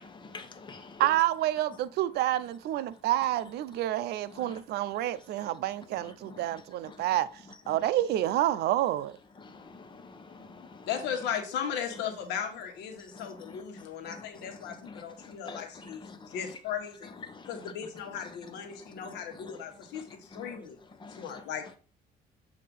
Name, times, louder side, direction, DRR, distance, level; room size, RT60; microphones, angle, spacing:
voice 1, 0.0-1.1 4.3-4.6 6.0-7.1 9.4-10.9 13.1-16.6 17.2-17.7 18.1-20.6 21.0-21.5, left 4 dB, 25° left, 1.0 m, -48 dB
voice 2, 1.0-7.3 7.7-9.2, right 13 dB, 75° right, 0.5 m, -28 dB
voice 3, 10.8-17.1 17.5-20.8 21.2-21.8, left 8 dB, 85° left, 1.4 m, -37 dB
7.4 x 2.8 x 5.4 m
cardioid pair, 110°, 17 cm